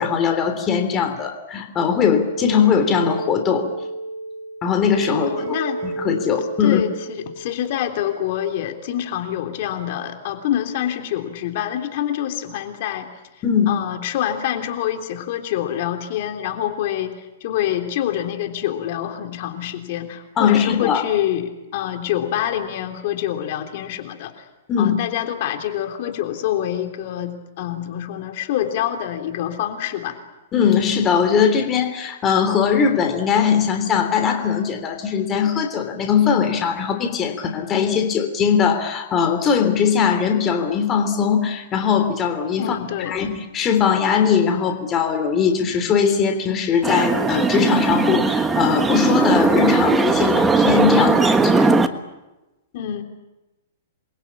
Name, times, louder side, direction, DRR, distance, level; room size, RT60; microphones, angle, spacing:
voice 1, 0.0-3.6 4.6-5.6 5.8-6.8 13.4-13.8 20.4-21.0 24.7-25.0 30.5-42.8 43.1-51.7, left 7 dB, 20° left, 5 dB, 3.3 m, -20 dB
sound 1, 2.1-7.7, right 3 dB, 30° right, 7.1 m, -31 dB
voice 2, 5.1-5.9 6.6-13.1 13.7-24.4 24.8-30.2 42.6-43.2 52.7-53.0, left 11 dB, 50° left, 5 dB, 3.3 m, -26 dB
sound 2, 46.8-51.9, right 3 dB, 10° right, 1.4 m, -18 dB
28.5 x 22.5 x 8.6 m, 1.0 s
hypercardioid pair, 155°, 0 cm